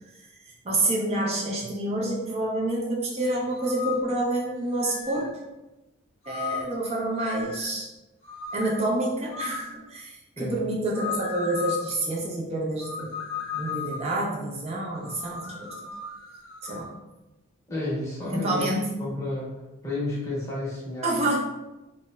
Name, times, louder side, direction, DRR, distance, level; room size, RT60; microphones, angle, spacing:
voice 1, 0.6-5.3 6.3-7.9 8.5-13.2 13.5-15.8 16.6-16.9 18.2-18.8 21.0-21.4, right 1 dB, 30° right, -3 dB, 0.5 m, -28 dB
sound 1, 3.5-4.1 4.8-5.3 6.2-6.8 7.2-7.7 8.2-8.8 9.3-9.7 10.9-11.9 12.8-14.1 15.0-16.9, left 6 dB, 60° left, 0.6 m, -35 dB
voice 2, 17.7-18.7 19.0-19.5 19.8-21.1, left 2 dB, 15° left, -8 dB, 0.8 m, -31 dB
2.8 x 2.0 x 2.2 m, 1.0 s
head